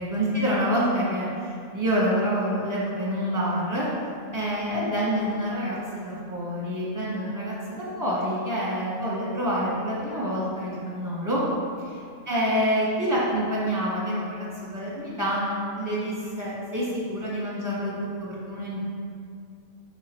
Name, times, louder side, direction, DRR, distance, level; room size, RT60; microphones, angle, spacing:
voice 1, 0.0-3.9 4.3-11.4 11.8-18.9, equal, 15° right, -7 dB, 1.3 m, -27 dB
5.1 x 4.9 x 4.5 m, 2.3 s
omnidirectional pair, 1.5 m